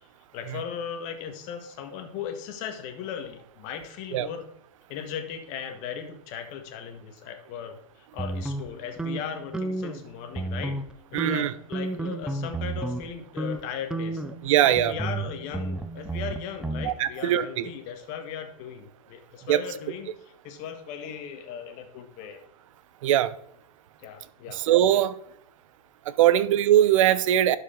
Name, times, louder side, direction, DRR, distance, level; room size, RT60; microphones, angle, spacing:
voice 1, 0.3-4.5 4.9-10.8 11.1-14.2 14.6-20.1 20.4-22.4 24.0-24.6, left 8 dB, 40° left, 1.6 m, -37 dB
sound 1, 8.2-10.0 10.3-10.9 11.2-13.1 13.4-13.6 13.9-16.9, right 2 dB, 5° right, 0.5 m, -32 dB
voice 2, 11.1-11.5 14.4-15.0 16.8-17.7 19.5-19.6 23.0-23.3 24.5-25.2 26.0-27.6, right 12 dB, 60° right, 0.7 m, -21 dB
11.5 x 5.0 x 3.8 m
hypercardioid pair, 130°, 19 cm